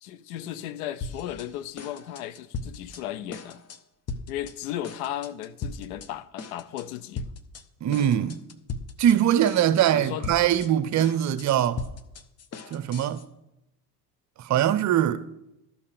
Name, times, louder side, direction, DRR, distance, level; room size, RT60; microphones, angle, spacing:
voice 1, 0.0-3.6 4.3-7.3 9.9-10.4, left 12 dB, 60° left, 0.8 m, -35 dB
sound 1, 1.0-1.5 1.8-3.0 3.3-3.8 4.1-4.5 4.8-6.1 6.4-6.8 7.2-7.6 7.9-9.2 9.4-9.9 10.2-13.2, left 4 dB, 30° left, 1.0 m, -37 dB
voice 2, 7.8-8.4 9.0-11.8 12.7-13.2 14.4-15.2, right 10 dB, 35° right, 0.8 m, -22 dB
13.0 x 5.6 x 6.8 m
figure-of-eight pair, 65°, 48 cm